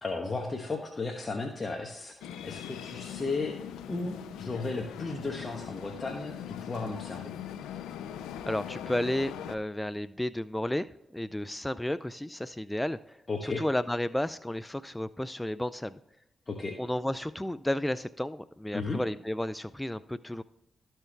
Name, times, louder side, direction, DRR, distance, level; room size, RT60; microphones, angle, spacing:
voice 1, 0.0-2.1 2.4-3.5 3.9-7.3 13.3-13.6 16.5-16.7 18.7-19.0, left 3 dB, 40° left, 1 dB, 1.2 m, -34 dB
sound 1, 2.2-9.6, left 10 dB, 90° left, 0.4 m, -41 dB
voice 2, 8.5-10.9 11.1-16.0 16.8-20.4, left 1 dB, 10° left, 14 dB, 0.4 m, -32 dB
13.0 x 4.6 x 3.3 m, 0.83 s
supercardioid pair, 40°, 0 cm